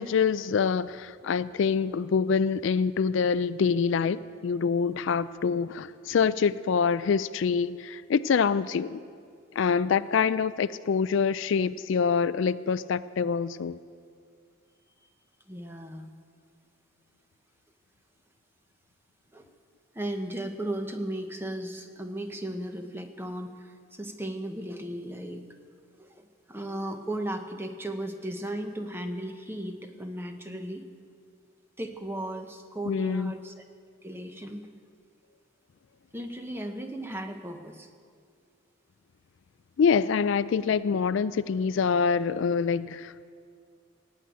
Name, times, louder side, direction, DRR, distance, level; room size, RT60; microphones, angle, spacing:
voice 1, 0.0-9.0 9.6-13.8 32.9-33.3 39.8-43.2, left 6 dB, 65° left, 15 dB, 0.3 m, -25 dB
voice 2, 15.5-16.1 19.3-19.5 19.9-25.4 26.0-30.8 31.8-33.5 34.0-34.7 36.1-37.9, right 1 dB, 10° right, 5 dB, 0.9 m, -36 dB
17.5 x 7.8 x 9.3 m, 2.2 s
head